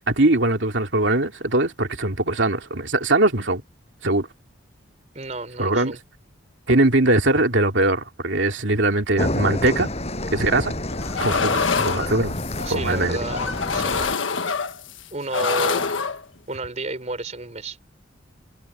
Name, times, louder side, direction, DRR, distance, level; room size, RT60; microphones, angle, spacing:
voice 1, 0.1-3.6 4.0-4.3 5.6-6.0 6.7-9.9 10.3-10.7 11.2-12.4 12.7-13.2, right 2 dB, 70° right, 2.9 m, -21 dB
voice 2, 5.1-6.0 12.6-14.1 15.1-15.9 16.5-17.8, right 2 dB, 35° right, 3.7 m, -31 dB
sound 1, 9.2-14.2, left 1 dB, 35° left, 7.8 m, -29 dB
sound 2, 10.9-12.8 13.3-15.0 15.3-16.2, left 5 dB, 85° left, 1.4 m, -25 dB
head